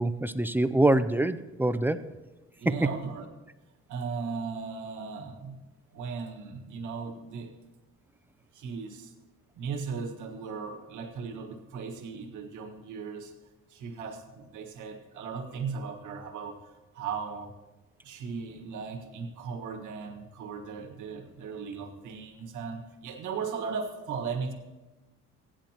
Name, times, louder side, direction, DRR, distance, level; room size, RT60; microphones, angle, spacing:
voice 1, 0.0-2.1 2.7-2.9, right 1 dB, 5° right, 12 dB, 0.4 m, -25 dB
voice 2, 2.6-3.2 3.9-5.6 5.9-7.5 8.5-9.1 9.5-13.3 13.7-17.5 18.0-24.5, right 5 dB, 80° right, 3 dB, 1.5 m, -37 dB
16.0 x 10.5 x 2.9 m, 1.1 s
cardioid pair, 90°, 30 cm